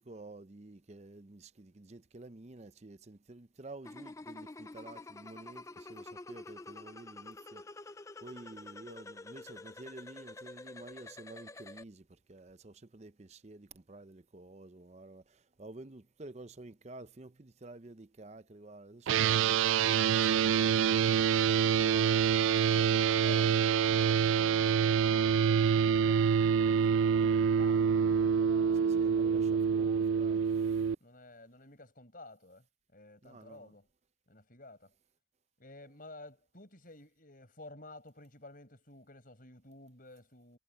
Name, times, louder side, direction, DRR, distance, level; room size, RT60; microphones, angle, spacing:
voice 1, 0.0-5.6 5.9-7.6 8.2-12.0 12.3-15.2 15.6-21.6 28.8-30.4 33.2-33.7, right 2 dB, 35° right, 0.7 m, -50 dB
sound 1, 3.9-11.8, left 3 dB, 15° left, 0.4 m, -48 dB
sound 2, 19.1-30.9, right 7 dB, 80° right, 0.3 m, -26 dB
voice 2, 21.2-28.9 31.0-32.6 32.9-33.9 34.3-34.9 35.6-40.6, left 2 dB, 45° left, 5.9 m, -52 dB
head